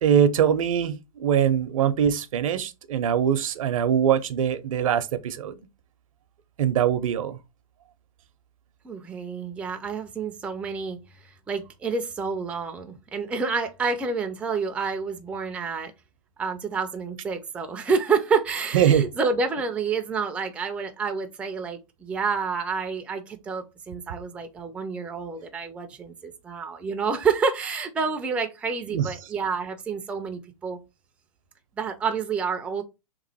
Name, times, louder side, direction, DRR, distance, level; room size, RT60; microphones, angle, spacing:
voice 1, 0.0-5.6 6.6-7.4 18.7-19.1 28.9-29.1, right 9 dB, 70° right, 0.6 m, -22 dB
voice 2, 8.8-15.9 16.4-30.8 31.8-32.8, right 5 dB, 5° right, 0.4 m, -28 dB
3.0 x 2.5 x 4.0 m
hypercardioid pair, 125°, 18 cm